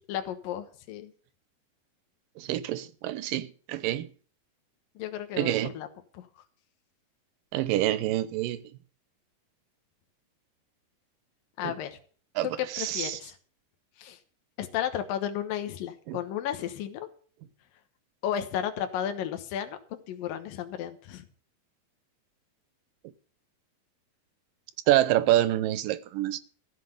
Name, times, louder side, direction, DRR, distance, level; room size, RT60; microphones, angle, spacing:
voice 1, 0.1-1.1 5.0-5.9 6.1-6.3 11.6-12.0 12.6-13.4 14.0-14.2 14.6-17.1 18.2-21.3, left 10 dB, 75° left, 2.9 m, -33 dB
voice 2, 2.4-4.1 5.4-5.7 7.5-8.6 11.6-11.7 12.4-12.5 12.7-13.2 16.1-16.2 24.9-26.4, right 14 dB, 80° right, 2.4 m, -26 dB
15.0 x 5.9 x 8.9 m
omnidirectional pair, 4.0 m